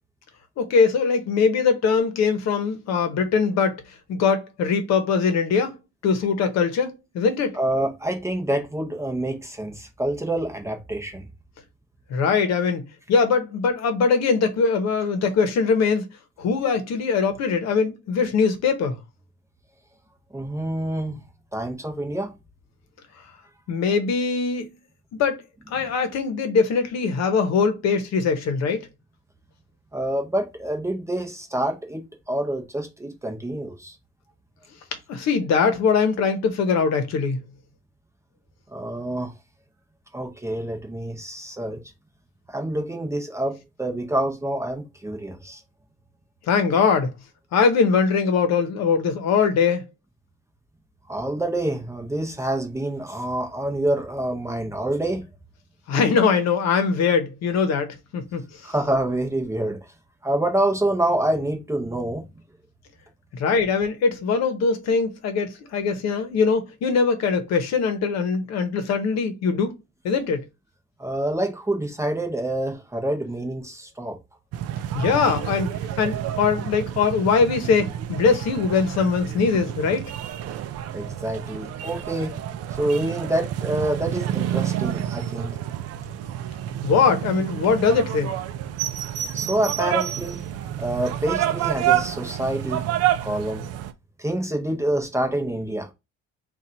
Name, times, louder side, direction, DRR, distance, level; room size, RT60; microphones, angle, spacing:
voice 1, 0.6-3.8 4.1-5.8 6.0-7.6 12.1-16.1 16.4-19.0 23.7-24.7 25.2-25.4 25.7-28.9 35.1-37.4 46.5-47.1 47.5-49.9 55.9-58.6 63.3-69.7 70.0-70.4 74.9-75.7 76.0-80.1 86.8-88.3, left 5 dB, 55° left, 1.0 m, -22 dB
voice 2, 7.5-11.2 20.3-21.2 21.5-22.3 29.9-33.9 38.7-39.3 40.1-41.8 42.5-45.6 51.1-55.2 58.6-59.8 60.2-62.2 71.0-74.2 80.9-82.4 82.7-85.6 89.3-90.4 90.8-92.8 93.2-93.7 94.2-95.9, right 1 dB, 10° right, 0.8 m, -27 dB
sound 1, 74.5-93.9, right 11 dB, 50° right, 0.5 m, -29 dB
4.1 x 2.5 x 4.2 m
cardioid pair, 165°, 31 cm